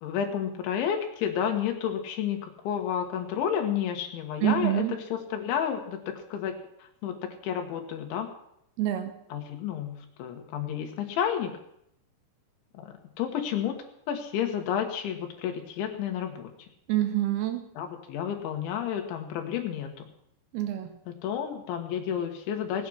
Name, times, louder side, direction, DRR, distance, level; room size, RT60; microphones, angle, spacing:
voice 1, 0.0-4.8 5.1-8.3 9.3-11.6 12.7-13.8 14.1-16.5 17.8-20.1 21.1-22.9, left 9 dB, 85° left, 4 dB, 3.8 m, -31 dB
voice 2, 4.4-5.0 8.8-9.1 16.9-17.7 20.5-20.9, right 14 dB, 75° right, 8 dB, 2.6 m, -26 dB
18.0 x 9.2 x 6.3 m, 0.75 s
omnidirectional pair, 5.2 m